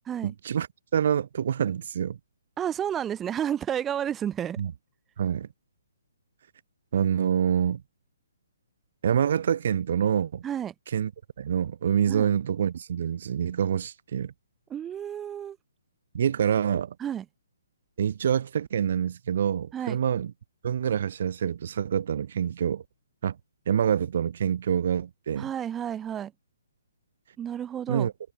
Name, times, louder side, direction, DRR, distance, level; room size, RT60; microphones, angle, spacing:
voice 1, 0.2-0.7 0.9-2.2 4.6-4.7 5.2-5.5 6.9-7.8 9.0-10.4 10.9-11.1 11.4-14.3 16.1-16.9 18.0-20.3 20.6-22.8 23.2-23.4 23.7-25.5 27.9-28.1, right 8 dB, 55° right, 2.9 m, -26 dB
voice 2, 2.6-4.6 10.4-10.7 12.1-12.3 14.7-15.6 17.0-17.2 19.7-20.0 25.4-26.3 27.4-28.1, right 9 dB, 10° right, 2.8 m, -31 dB
hypercardioid pair, 155°, 0 cm